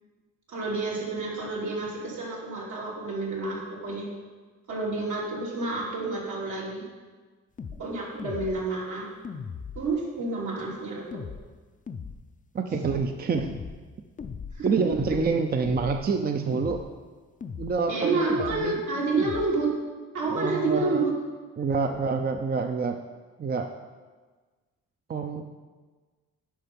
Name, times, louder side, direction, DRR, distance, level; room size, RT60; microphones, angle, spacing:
voice 1, 0.5-4.1 4.7-6.8 7.8-9.1 9.7-11.2 14.6-14.7 15.1-15.2 17.9-19.7 20.1-21.1, right 3 dB, 75° right, -4 dB, 3.0 m, -29 dB
Monotron Drums, 7.6-7.8 8.2-8.6 9.2-9.9 11.1-11.4 11.9-12.2 12.7-13.1 13.4-13.8 14.2-14.6 14.9-15.3 15.6-16.1 16.5-16.9 17.4-17.8 18.3-18.7 19.2-19.5, left 6 dB, 25° left, 0.5 m, -38 dB
voice 2, 12.5-13.5 14.6-16.8 17.6-18.8 20.3-21.0 21.6-23.0 23.4-23.7 25.1-25.4, right 5 dB, 30° right, 6 dB, 0.6 m, -27 dB
10.0 x 5.7 x 5.3 m, 1.4 s
cardioid pair, 90°, 30 cm